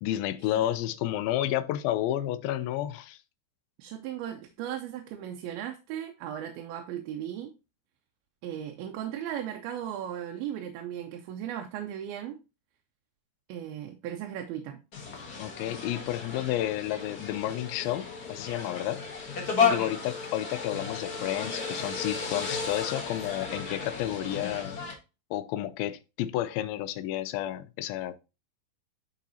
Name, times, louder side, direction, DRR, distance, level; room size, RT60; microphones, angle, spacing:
voice 1, 0.0-3.2 15.4-19.0 19.7-24.8 25.3-28.2, left 13 dB, 85° left, 2.4 m, -31 dB
voice 2, 3.8-7.5 8.4-12.4 13.5-14.8 19.5-19.8, right 10 dB, 90° right, 2.6 m, -37 dB
sound 1, 14.9-24.9, left 5 dB, 55° left, 1.0 m, -33 dB
11.0 x 4.0 x 2.7 m
omnidirectional pair, 4.2 m